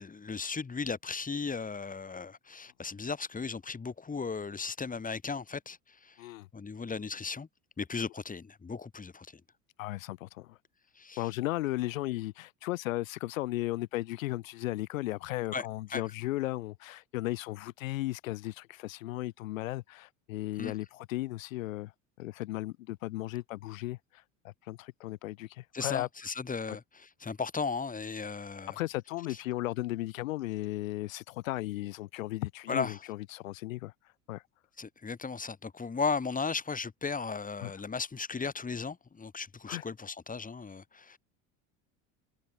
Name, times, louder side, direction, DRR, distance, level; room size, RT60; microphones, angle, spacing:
voice 1, 0.0-6.2 6.5-7.5 7.8-9.4 11.0-11.3 15.5-15.7 15.9-16.0 20.6-20.7 25.7-28.8 29.3-29.4 32.7-33.0 34.8-41.2, left 5 dB, 20° left, 3.9 m, -36 dB
voice 2, 9.8-10.6 11.2-21.9 22.2-26.1 28.8-33.9 34.3-34.4 37.6-37.7 39.7-39.8, left 17 dB, 90° left, 2.3 m, -35 dB
supercardioid pair, 95°, 39 cm